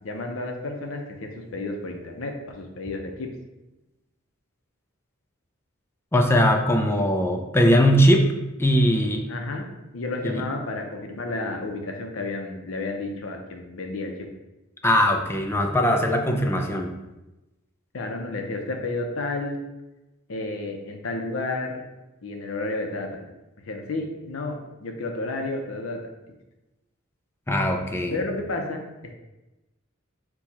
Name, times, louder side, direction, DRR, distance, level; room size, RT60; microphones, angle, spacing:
voice 1, 0.0-3.3 9.3-9.7 9.9-14.1 17.9-19.6 20.3-21.8 22.2-23.3 23.6-26.0 28.1-28.8, left 2 dB, 70° left, 3 dB, 0.7 m, -31 dB
voice 2, 6.1-8.3 8.6-9.3 10.2-10.5 14.8-16.9 27.5-28.2, equal, 10° left, 3 dB, 0.4 m, -20 dB
4.6 x 2.3 x 4.1 m, 1.0 s
head